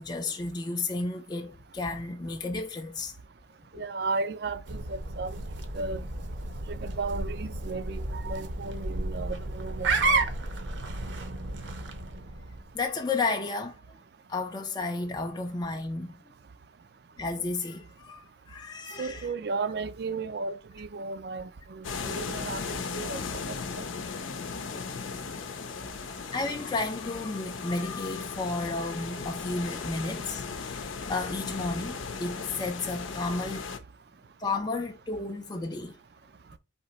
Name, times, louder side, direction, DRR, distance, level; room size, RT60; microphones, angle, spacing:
voice 1, 0.0-3.1 3.7-3.8 12.7-13.8 14.3-16.1 17.2-19.3 26.3-33.7 34.4-36.0, left 3 dB, 20° left, 0.4 m, -32 dB
voice 2, 3.7-5.4 5.7-6.1 6.7-10.2 19.0-23.9, right 4 dB, 55° right, 0.4 m, -35 dB
sound 1, 4.6-12.7, right 3 dB, 70° right, 0.8 m, -32 dB
sound 2, 21.8-33.8, left 5 dB, 85° left, 0.7 m, -37 dB
4.3 x 2.9 x 4.1 m
head